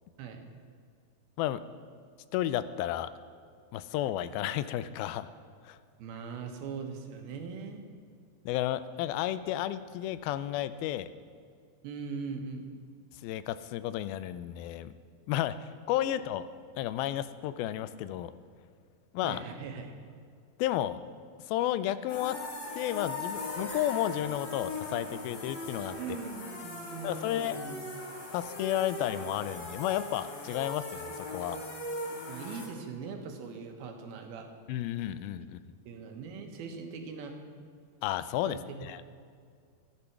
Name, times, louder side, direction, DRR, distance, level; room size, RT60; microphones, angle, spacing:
voice 1, 2.3-3.1 3.7-5.3 5.6-5.8 8.5-11.1 13.2-14.9 15.3-16.4 16.8-18.3 19.1-19.4 20.6-21.0 21.5-22.4 22.7-26.0 27.0-27.6 28.3-31.6 34.7-35.6 38.0-39.0, left 12 dB, 85° left, 14 dB, 2.4 m, -32 dB
voice 2, 6.0-7.8 11.8-12.7 16.0-16.1 19.2-19.9 26.0-28.0 32.3-34.5 35.9-37.4 38.4-38.9, right 5 dB, 85° right, 3 dB, 3.2 m, -41 dB
sound 1, 22.1-32.7, left 2 dB, 40° left, 3.2 m, -39 dB
14.5 x 10.5 x 5.9 m, 2.2 s
omnidirectional pair, 4.2 m